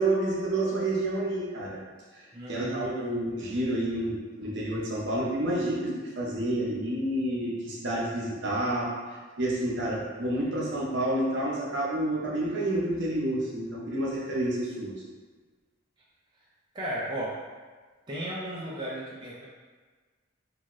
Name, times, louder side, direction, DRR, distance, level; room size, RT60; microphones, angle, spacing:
voice 1, 0.0-1.8 2.1-2.2 2.5-8.9 9.4-15.0, right 1 dB, 60° right, -5 dB, 0.7 m, -29 dB
voice 2, 2.3-3.2 16.7-17.4 18.1-19.5, right 1 dB, 25° right, -7 dB, 0.4 m, -35 dB
2.7 x 2.4 x 3.0 m, 1.4 s
head